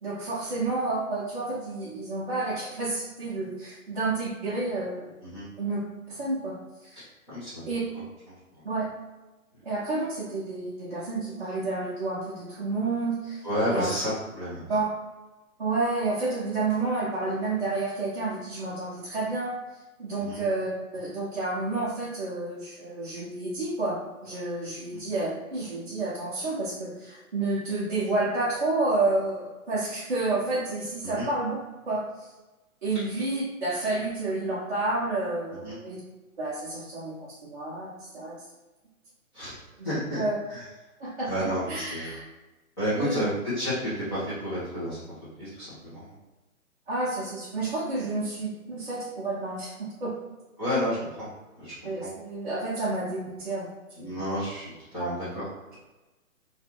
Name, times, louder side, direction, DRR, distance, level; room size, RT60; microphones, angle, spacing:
voice 1, 0.0-5.1 5.6-5.8 6.1-7.0 7.7-7.8 8.6-8.9 9.6-13.4 13.7-13.9 14.7-14.9 15.6-19.6 20.0-31.6 31.9-32.3 32.8-36.0 36.4-38.4 39.8-39.9 40.2-40.4 41.0-42.2 42.9-43.3 46.9-50.1 51.8-53.7 54.0-54.2 55.0-55.2, right 2 dB, 35° right, -10 dB, 0.6 m, -30 dB
voice 2, 7.0-7.6 7.9-8.0 9.5-9.6 13.4-14.7 20.2-20.4 24.8-25.0 31.0-31.3 35.6-35.8 39.3-39.6 39.8-40.2 40.5-40.7 41.2-42.1 42.8-45.0 45.4-46.2 50.6-51.3 51.5-52.1 54.0-55.4, equal, 20° left, -14 dB, 0.8 m, -31 dB
2.6 x 2.4 x 2.7 m, 1.1 s
hypercardioid pair, 160°, 43 cm